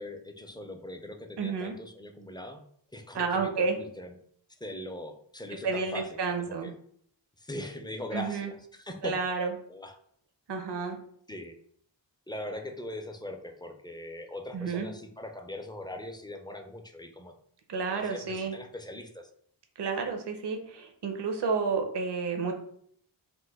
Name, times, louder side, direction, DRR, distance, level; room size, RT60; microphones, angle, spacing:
voice 1, 0.0-2.6 2.9-4.1 4.6-6.7 7.4-9.2 9.7-10.0 11.3-11.5 12.3-17.3 17.9-19.3, left 1 dB, 10° left, 4 dB, 0.3 m, -41 dB
voice 2, 1.4-1.7 3.1-3.8 5.6-6.7 8.1-8.5 9.0-9.5 10.5-11.0 14.5-14.9 17.7-18.6 19.8-22.5, right 4 dB, 60° right, 4 dB, 0.6 m, -30 dB
3.0 x 2.1 x 3.4 m, 0.63 s
wide cardioid pair, 50°, 48 cm